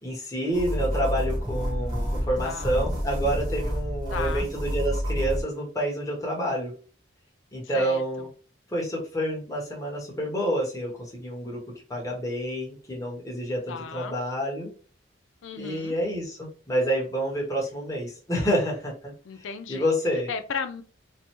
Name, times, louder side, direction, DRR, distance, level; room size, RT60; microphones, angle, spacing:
voice 1, 0.0-6.7 7.5-8.3 8.7-11.6 11.9-14.7 15.5-20.3, equal, 15° left, -4 dB, 1.0 m, -28 dB
sound 1, 0.5-5.4, equal, 25° right, 1.0 m, -29 dB
voice 2, 2.4-2.8 4.1-4.4 7.7-8.0 13.7-14.1 15.4-15.9 19.3-19.9 20.3-20.8, left 5 dB, 85° left, 8 dB, 0.5 m, -34 dB
3.2 x 2.1 x 2.8 m, 0.39 s
head